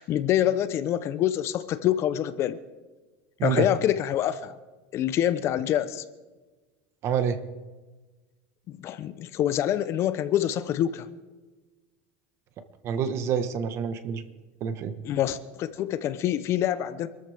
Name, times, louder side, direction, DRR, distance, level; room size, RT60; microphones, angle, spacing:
voice 1, 0.0-2.6 3.4-4.5 4.9-6.0 8.7-11.1 15.0-17.1, left 11 dB, 40° left, 0.8 m, -26 dB
voice 2, 7.0-7.4 12.8-14.2 14.6-14.9, right 7 dB, 40° right, 1.4 m, -27 dB
26.5 x 13.5 x 3.5 m
supercardioid pair, 135°, 7 cm